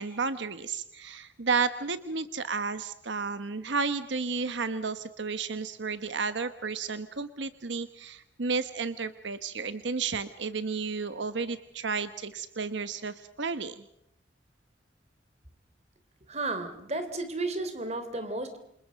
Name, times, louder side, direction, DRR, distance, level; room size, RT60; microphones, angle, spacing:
voice 1, 0.0-13.8, right 4 dB, 75° right, 11 dB, 1.1 m, -32 dB
voice 2, 16.3-18.6, right 2 dB, 35° right, 9 dB, 3.3 m, -33 dB
28.0 x 27.5 x 5.2 m, 0.74 s
head